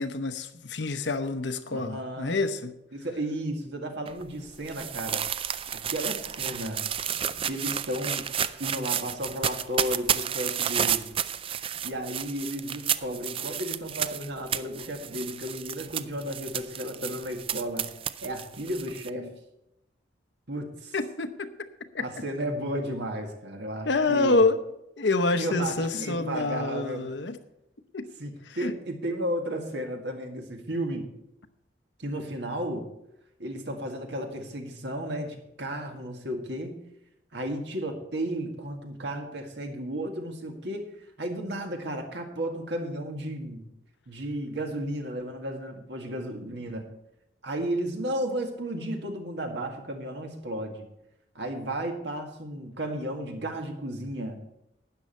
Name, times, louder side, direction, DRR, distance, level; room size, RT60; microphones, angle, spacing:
voice 1, 0.0-2.7 20.9-21.7 21.9-22.0 23.9-24.6 25.0-27.4 27.9-28.1 28.5-28.7, left 3 dB, 70° left, 10 dB, 0.9 m, -27 dB
voice 2, 1.7-2.4 2.9-5.2 5.7-6.8 7.4-8.3 8.6-11.1 11.8-17.9 18.2-19.3 20.5-21.0 22.0-24.4 25.4-27.0 28.2-31.1 32.0-32.9 33.4-36.8 37.3-40.9 41.2-43.7 44.1-46.9 47.4-50.9 51.4-54.4, right 1 dB, 65° right, 4 dB, 1.9 m, -33 dB
sound 1, 4.1-19.1, right 9 dB, 30° right, 0.3 m, -31 dB
12.5 x 9.6 x 4.4 m, 0.84 s
head